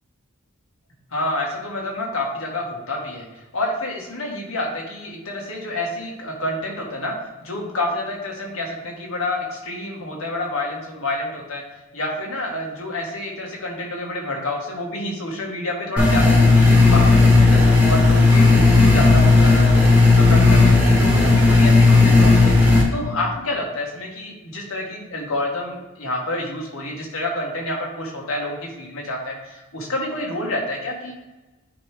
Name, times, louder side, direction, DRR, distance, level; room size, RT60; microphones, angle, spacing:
voice 1, 1.1-7.2 7.4-11.6 11.9-17.6 17.9-22.6 22.9-31.1, left 1 dB, 75° left, -1 dB, 1.7 m, -28 dB
sound 1, 16.0-22.8, left 3 dB, 5° right, 1.3 m, -13 dB
9.3 x 3.1 x 3.6 m, 1.1 s
head